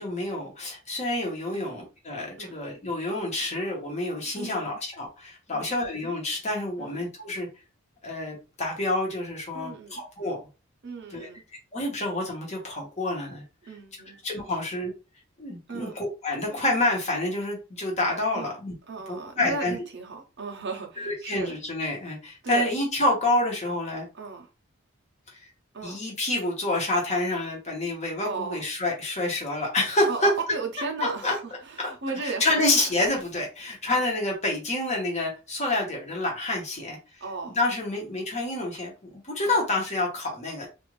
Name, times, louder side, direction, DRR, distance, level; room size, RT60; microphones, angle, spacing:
voice 1, 0.0-7.5 8.0-10.4 11.1-11.3 11.7-13.4 14.1-14.9 15.4-18.7 19.1-19.7 21.0-24.1 25.8-30.3 31.0-31.3 31.8-31.9 32.2-37.0 37.5-40.7, left 2 dB, 35° left, 1.0 m, -28 dB
voice 2, 4.4-4.8 5.5-5.8 6.8-7.0 9.5-10.0 10.8-11.4 13.6-14.2 15.7-15.9 18.3-18.5 18.9-21.6 22.4-22.7 24.1-24.5 25.7-26.0 28.2-28.6 30.1-32.8 33.9-34.0 37.2-37.6 39.4-39.6, right 4 dB, 55° right, 0.7 m, -35 dB
2.5 x 2.5 x 3.1 m
head